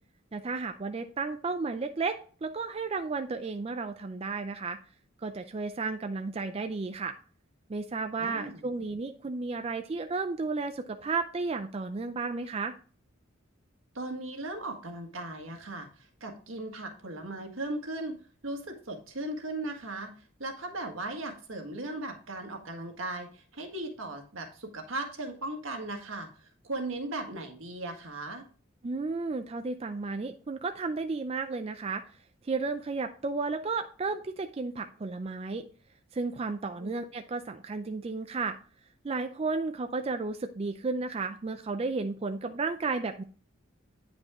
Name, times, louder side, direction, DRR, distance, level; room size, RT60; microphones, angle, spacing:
voice 1, 0.3-4.8 5.2-7.2 7.7-12.7 28.8-32.0 32.4-35.6 36.1-38.6 39.0-43.2, right 4 dB, 30° right, 7 dB, 0.4 m, -33 dB
voice 2, 8.2-8.6 13.9-18.2 18.4-20.1 20.4-28.4 36.8-36.9, right 2 dB, 75° right, 4 dB, 1.6 m, -37 dB
9.6 x 5.2 x 3.6 m, 0.41 s
head